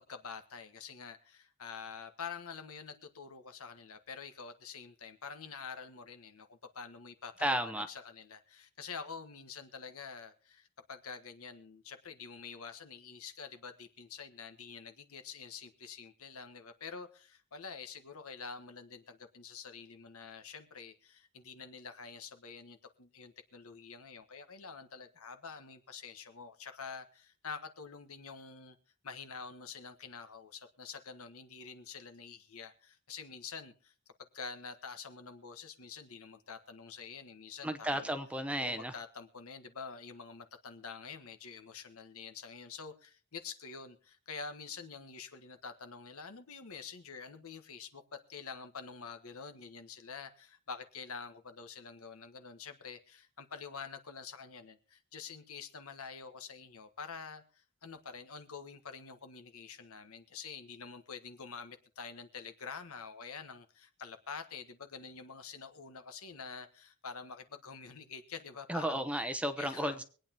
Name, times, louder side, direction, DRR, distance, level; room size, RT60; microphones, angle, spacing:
voice 1, 0.0-28.8 29.0-33.9 34.3-38.1 38.6-69.0 69.6-70.0, left 5 dB, 65° left, 8 dB, 1.4 m, -47 dB
voice 2, 7.4-7.9 37.6-38.9 68.7-70.0, equal, 5° right, 10 dB, 0.8 m, -33 dB
24.0 x 9.1 x 3.0 m, 0.39 s
head